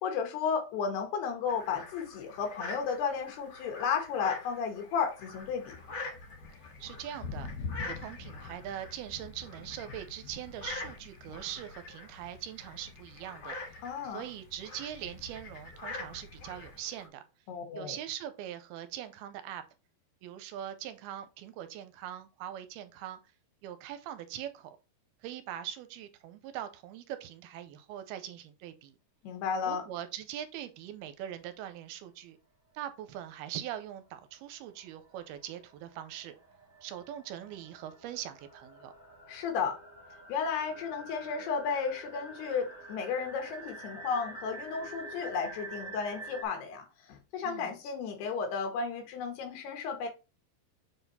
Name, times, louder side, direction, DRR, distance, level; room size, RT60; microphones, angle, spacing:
voice 1, 0.0-5.7 13.8-14.2 17.5-18.0 29.2-29.8 39.3-39.8 40.3-50.1, left 6 dB, 80° left, 3.6 m, -33 dB
sound 1, 1.5-17.1, left 3 dB, 45° left, 1.6 m, -45 dB
Thunder, 5.2-16.8, left 4 dB, 65° left, 1.6 m, -47 dB
voice 2, 6.8-7.5 7.9-13.6 14.0-17.2 17.7-19.6 20.2-23.2 23.6-24.7 25.2-29.0 29.6-32.4 32.8-36.4 36.8-38.9 47.4-47.7, right 11 dB, 80° right, 2.5 m, -42 dB
sound 2, 33.6-33.7 34.0-46.4, right 2 dB, 20° right, 1.5 m, -48 dB
7.2 x 4.1 x 4.1 m
omnidirectional pair, 4.6 m